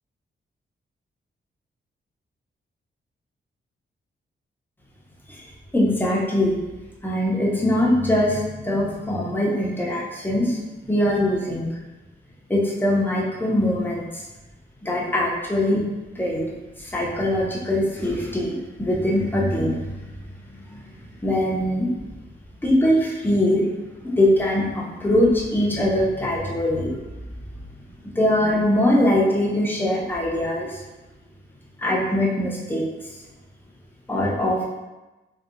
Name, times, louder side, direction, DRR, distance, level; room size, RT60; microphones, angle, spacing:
voice 1, 5.7-6.6 7.0-10.6 10.9-11.8 12.5-14.2 14.8-15.9 16.2-16.5 16.8-19.8 20.7-20.9 21.2-21.9 22.6-23.6 24.0-26.9 28.2-30.8 31.8-32.9 34.1-34.6, left 1 dB, 10° left, -4 dB, 0.5 m, -22 dB
2.7 x 2.1 x 2.4 m, 1.1 s
wide cardioid pair, 145°, 20 cm